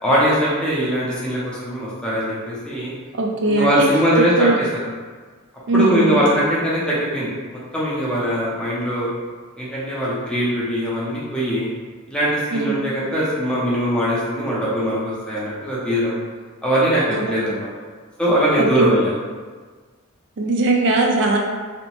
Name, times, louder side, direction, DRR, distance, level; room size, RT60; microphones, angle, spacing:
voice 1, 0.0-2.9 3.5-4.5 5.7-9.1 9.6-11.7 12.1-16.1 16.6-17.7 18.2-19.1, equal, 5° left, -8 dB, 0.6 m, -21 dB
voice 2, 3.2-3.9 4.2-4.6 5.7-6.3 12.5-12.7 17.1-17.3 18.6-19.0 20.4-21.4, right 2 dB, 60° right, 1 dB, 0.3 m, -19 dB
2.7 x 2.0 x 2.9 m, 1.5 s
head